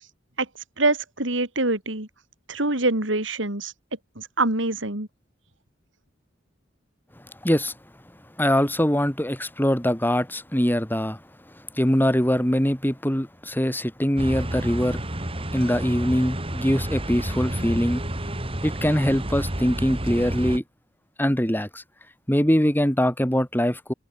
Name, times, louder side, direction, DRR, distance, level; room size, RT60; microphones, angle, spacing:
voice 1, 0.8-2.1 2.5-3.7 4.2-5.1, right 2 dB, 70° right, 4.4 m, -24 dB
voice 2, 7.4-7.7 8.4-11.2 11.7-15.0 15.5-18.0 18.6-20.6 21.2-21.8 22.3-23.9, equal, 10° left, 5.3 m, -22 dB
sound 1, 14.2-20.6, right 1 dB, 30° right, 3.8 m, -30 dB
head